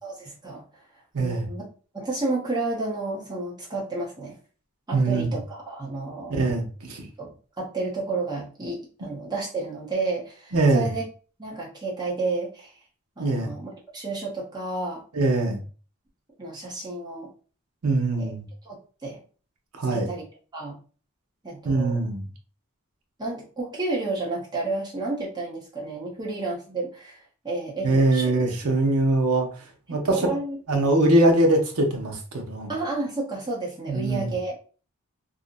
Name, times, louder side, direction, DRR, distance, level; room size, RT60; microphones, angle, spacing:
voice 1, 0.0-0.6 1.2-1.6 1.9-4.4 4.9-6.4 7.2-7.3 7.6-11.0 11.4-12.7 13.2-15.0 16.4-17.3 18.2-18.3 18.7-19.2 19.9-20.2 20.5-20.8 21.4-22.0 23.2-27.2 27.4-28.3 29.9-30.6 32.7-34.5, right 3 dB, 20° right, -4 dB, 0.7 m, -31 dB
voice 2, 1.1-1.5 4.9-5.4 6.3-7.1 10.5-10.9 13.2-13.5 15.1-15.6 17.8-18.4 19.7-20.1 21.6-22.3 27.8-29.5 29.9-30.3 30.7-32.7 33.9-34.3, right 2 dB, 80° right, 3 dB, 0.6 m, -22 dB
2.5 x 2.0 x 2.5 m, 0.38 s
head